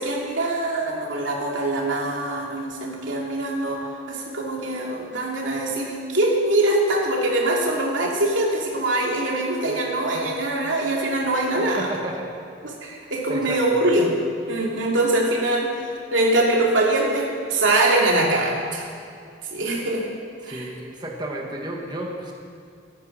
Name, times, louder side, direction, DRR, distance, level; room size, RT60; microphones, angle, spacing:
voice 1, 0.0-11.9 12.6-14.1 14.5-18.9 19.5-20.1 20.5-20.7, right 2 dB, 90° right, -2 dB, 2.8 m, -23 dB
voice 2, 11.8-12.3 13.3-13.8 20.4-22.3, right 1 dB, 20° right, 0 dB, 1.3 m, -32 dB
14.0 x 12.5 x 6.1 m, 2.4 s
head